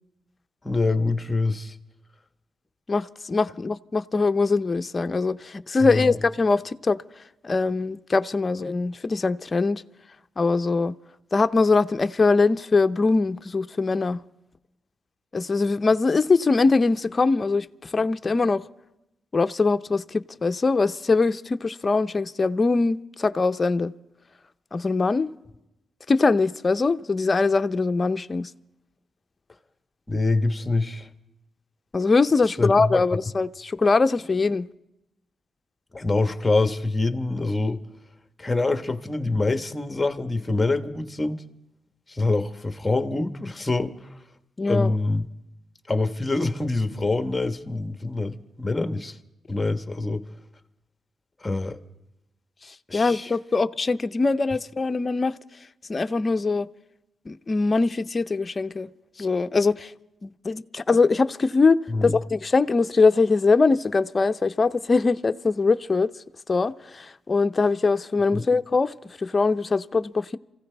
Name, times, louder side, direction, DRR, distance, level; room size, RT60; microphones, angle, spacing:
voice 1, 0.6-1.7 5.9-6.1 30.1-31.1 32.6-33.0 35.9-37.8 38.4-41.4 42.1-43.9 44.7-45.3 45.9-49.2 49.5-50.2 51.4-51.8 52.9-53.3 61.9-62.2 68.3-68.4, left 2 dB, 15° left, 1.2 m, -25 dB
voice 2, 2.9-7.0 7.4-9.8 10.4-10.9 11.3-14.2 15.3-18.6 19.3-23.9 24.7-25.3 26.1-28.5 31.9-34.7 44.6-44.9 52.6-55.4 55.9-56.7 57.3-58.9 59.2-59.9 60.2-66.1 66.5-70.4, left 4 dB, 35° left, 0.6 m, -22 dB
27.5 x 15.5 x 3.4 m
cardioid pair, 80°, 0 cm